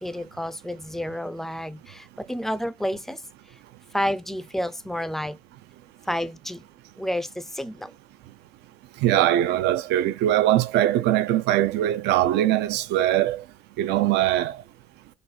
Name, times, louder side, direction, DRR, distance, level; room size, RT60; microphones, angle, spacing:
voice 1, 0.0-3.2 3.9-5.4 6.1-6.6 7.0-7.9, equal, ahead, 0.4 m, -30 dB
voice 2, 9.0-13.4 13.8-14.6, right 13 dB, 80° right, 0.5 m, -21 dB
4.0 x 2.3 x 2.8 m
cardioid pair, 110°, 17 cm